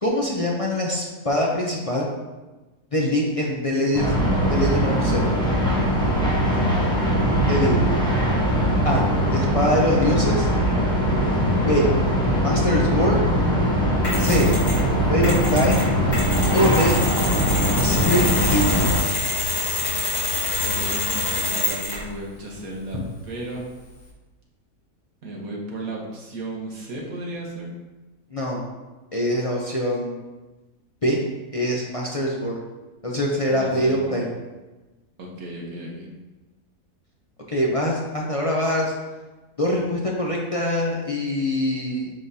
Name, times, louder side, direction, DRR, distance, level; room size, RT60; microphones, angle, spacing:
voice 1, 0.0-2.1 2.9-4.1 4.5-5.3 7.5-7.8 8.8-9.0 9.3-10.5 11.6-11.9 12.4-13.2 14.2-14.5 15.1-15.8 16.5-17.0 17.8-18.2 18.5-18.8 28.3-28.6 29.1-30.2 31.0-31.2 31.5-32.6 33.0-34.3 37.5-38.9 39.6-42.1, equal, 35° left, -3 dB, 0.5 m, -23 dB
sound 1, 3.9-19.0, equal, 5° left, 1.0 m, -21 dB
Mechanisms, 14.0-14.9 15.2-22.1, left 2 dB, 90° left, 2.8 m, -27 dB
sound 2, 15.3-21.4, left 6 dB, 20° left, 1.3 m, -36 dB
voice 2, 20.6-23.0 23.2-23.6 25.2-27.7 33.5-34.2 35.2-36.1, right 1 dB, 65° right, -2 dB, 1.7 m, -34 dB
9.9 x 3.8 x 2.8 m, 1.2 s
omnidirectional pair, 1.7 m